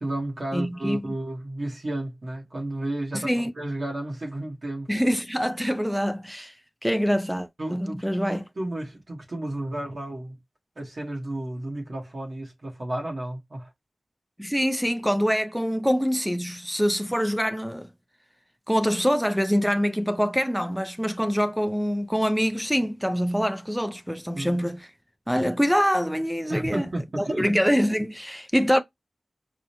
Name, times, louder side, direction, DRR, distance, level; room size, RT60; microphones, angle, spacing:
voice 1, 0.0-4.9 7.6-10.3 10.8-13.7 24.3-24.6 26.5-27.5, right 1 dB, 55° right, 1.2 m, -32 dB
voice 2, 0.5-1.0 3.1-3.5 4.9-6.5 6.8-8.4 14.4-17.9 18.7-24.8 25.3-26.9 27.2-28.8, equal, ahead, 0.4 m, -25 dB
4.8 x 2.1 x 2.8 m
wide cardioid pair, 65°, 0 cm